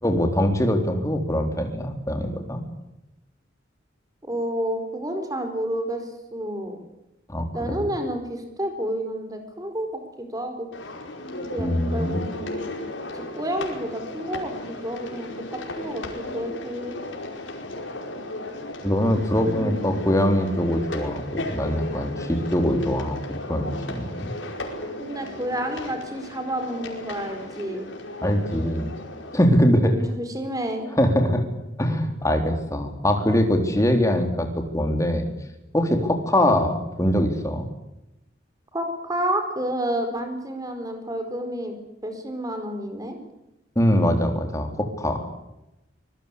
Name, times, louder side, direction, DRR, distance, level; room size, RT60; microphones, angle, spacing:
voice 1, 0.0-2.6 7.3-7.8 11.6-12.2 18.8-23.2 23.5-24.3 28.2-28.9 29.3-29.9 31.0-31.5 31.8-35.3 35.7-37.7 43.8-45.3, equal, 15° left, 4 dB, 3.8 m, -22 dB
voice 2, 4.3-6.8 7.5-9.9 10.2-10.7 11.5-16.9 19.5-19.8 25.0-27.9 29.9-30.8 38.7-41.7 42.0-43.2, right 1 dB, 20° right, 6 dB, 4.7 m, -30 dB
sound 1, 10.7-29.4, left 1 dB, 80° left, 5.2 m, -35 dB
25.0 x 21.5 x 8.6 m, 0.92 s
head